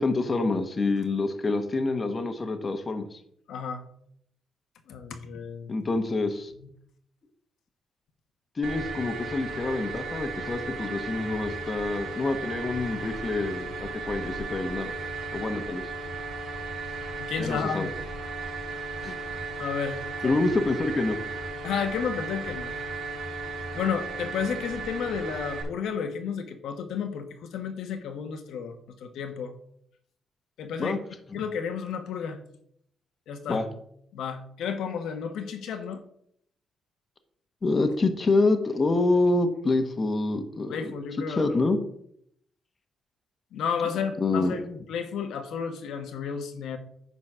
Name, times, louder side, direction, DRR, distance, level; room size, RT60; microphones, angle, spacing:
voice 1, 0.0-3.2 5.7-6.5 8.6-14.9 15.3-15.9 17.4-17.9 19.0-19.1 20.2-21.5 30.8-31.0 31.3-31.4 33.5-33.6 37.6-40.9 41.3-41.8 44.2-44.8, left 3 dB, 30° left, 8 dB, 1.0 m, -27 dB
voice 2, 3.5-3.8 4.9-5.9 17.2-17.9 19.6-20.4 21.6-22.7 23.7-29.5 30.6-31.0 31.3-32.4 33.3-33.6 34.1-36.0 37.7-37.8 40.7-41.5 43.5-44.6 44.9-46.8, left 7 dB, 90° left, 7 dB, 1.3 m, -32 dB
sound 1, 8.6-25.6, right 3 dB, 80° right, 4.0 m, -35 dB
9.9 x 4.1 x 6.1 m, 0.69 s
cardioid pair, 130°, 0 cm